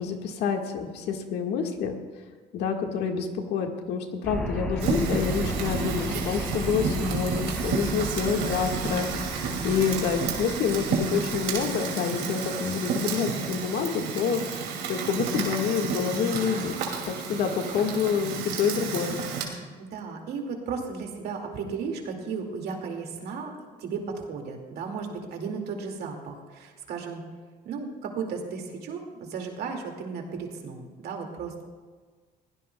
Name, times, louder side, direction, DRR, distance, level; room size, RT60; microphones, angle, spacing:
voice 1, 0.0-2.0 2.5-16.7 17.0-19.2, left 6 dB, 80° left, 3 dB, 1.8 m, -28 dB
sound 1, 4.2-11.7, right 1 dB, 5° left, 2.8 m, -34 dB
Fire, 4.8-19.5, right 5 dB, 90° right, 2.6 m, -31 dB
voice 2, 9.7-10.1 19.8-23.5 23.8-27.2 27.6-31.6, right 5 dB, 70° right, 2 dB, 2.3 m, -35 dB
22.0 x 16.5 x 2.3 m, 1.5 s
cardioid pair, 110°, 17 cm